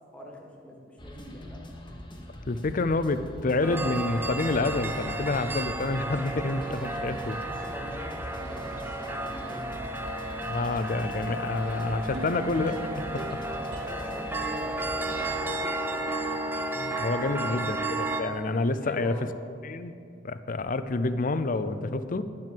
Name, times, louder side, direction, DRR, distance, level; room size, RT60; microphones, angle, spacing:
voice 1, 0.1-1.7 7.4-9.9 13.3-16.1 17.3-17.8 18.8-19.3, left 1 dB, 5° left, -1 dB, 1.7 m, -43 dB
sound 1, 1.0-15.4, left 1 dB, 25° left, 1.3 m, -44 dB
voice 2, 2.5-7.4 10.4-12.9 13.1-13.2 16.8-19.1 19.6-19.9 20.2-22.3, left 2 dB, 45° left, 12 dB, 0.5 m, -28 dB
sound 2, 3.6-18.2, right 2 dB, 10° right, 0.6 m, -33 dB
sound 3, 12.1-15.4 15.9-16.0, right 4 dB, 65° right, 0.8 m, -44 dB
11.5 x 7.5 x 7.7 m, 2.4 s
head